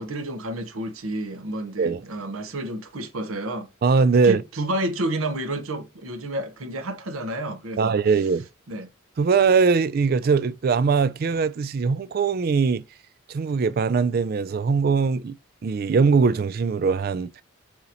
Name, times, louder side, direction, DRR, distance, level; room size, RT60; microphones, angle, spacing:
voice 1, 0.0-3.7 4.2-7.9 8.7-8.9, right 1 dB, 80° right, 0.9 m, -30 dB
voice 2, 3.8-4.4 7.8-8.5 9.2-12.8 13.3-15.4 15.6-17.4, right 5 dB, 45° right, 0.3 m, -21 dB
6.8 x 2.9 x 2.6 m
head